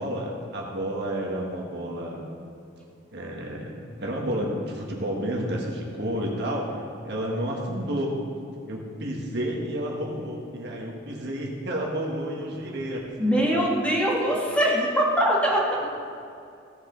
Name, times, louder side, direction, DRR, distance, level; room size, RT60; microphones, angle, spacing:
voice 1, 0.0-2.2 3.1-6.7 7.0-8.1 8.7-13.7, equal, 60° right, -1 dB, 1.6 m, -31 dB
voice 2, 13.2-15.6, equal, 5° left, -4 dB, 1.8 m, -22 dB
16.0 x 7.2 x 3.9 m, 2.5 s
head